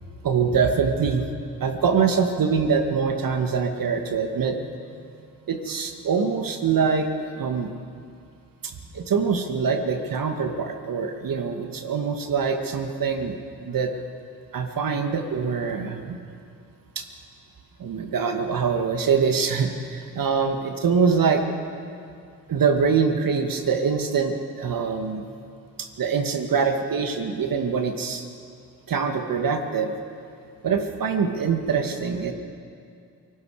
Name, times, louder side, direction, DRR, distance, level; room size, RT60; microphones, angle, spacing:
voice 1, 0.2-1.3 1.6-4.6 5.5-7.7 8.6-13.3 13.6-13.9 14.5-16.2 17.0-17.1 17.8-21.4 22.5-25.3 25.8-28.3 28.9-29.9 30.6-32.3, right 5 dB, 50° right, 5 dB, 2.1 m, -24 dB
28.5 x 19.0 x 5.0 m, 2.4 s
hypercardioid pair, 45°, 42 cm